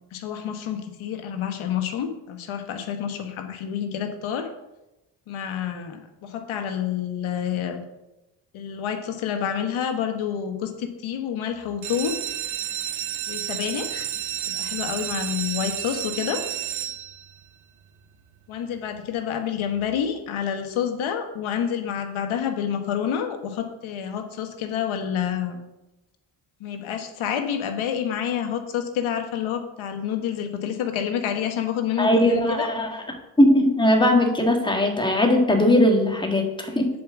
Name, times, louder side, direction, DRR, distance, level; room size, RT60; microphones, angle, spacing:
voice 1, 0.1-4.5 5.3-7.8 8.5-12.2 13.3-14.1 14.5-16.4 18.5-25.6 26.6-32.7, left 8 dB, 80° left, 6 dB, 1.4 m, -28 dB
sound 1, 11.7-17.4 18.1-18.5 18.9-19.0 19.3-19.4 19.8-19.9, right 10 dB, 80° right, 1.1 m, -31 dB
voice 2, 32.0-32.9 33.4-36.9, left 1 dB, 10° left, 3 dB, 1.7 m, -19 dB
7.6 x 5.3 x 7.3 m, 0.94 s
cardioid pair, 75°, 47 cm